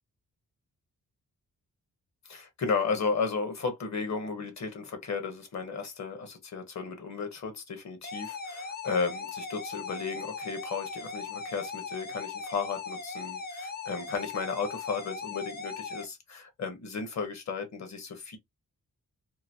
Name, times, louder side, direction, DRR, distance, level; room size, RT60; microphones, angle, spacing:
voice 1, 2.3-18.4, left 5 dB, 50° left, 1.0 m, -34 dB
sound 1, 8.0-16.0, left 4 dB, 30° left, 0.5 m, -39 dB
2.9 x 2.6 x 2.7 m
wide cardioid pair, 175°, 35 cm